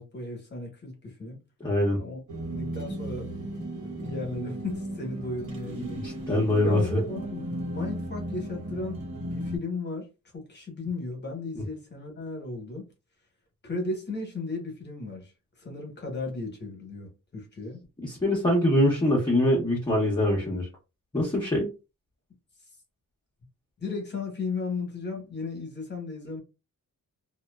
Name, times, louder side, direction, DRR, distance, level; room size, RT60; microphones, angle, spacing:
voice 1, 0.0-1.4 1.9-2.2 2.5-3.4 3.8-6.0 6.6-10.1 10.3-12.9 13.6-15.3 15.6-17.8 23.8-26.4, left 3 dB, 30° left, 0.9 m, -35 dB
voice 2, 1.6-2.0 6.0-7.0 18.0-20.7 21.1-21.7, left 1 dB, 15° left, 0.6 m, -24 dB
sound 1, 2.3-9.6, right 1 dB, 60° right, 0.9 m, -35 dB
2.7 x 2.1 x 2.2 m
wide cardioid pair, 175°, 34 cm